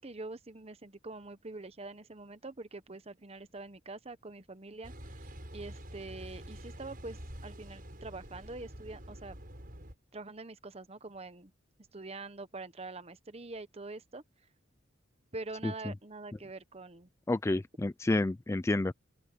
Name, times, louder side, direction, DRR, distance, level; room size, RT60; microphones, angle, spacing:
voice 1, 0.0-9.3 10.1-11.5 11.9-14.2 15.3-17.1, right 3 dB, 30° right, 1.0 m, -45 dB
Car passing by / Idling / Accelerating revving vroom, 4.8-9.9, equal, 45° right, 7.2 m, -47 dB
voice 2, 17.3-18.9, left 2 dB, 15° left, 0.3 m, -29 dB
open air
head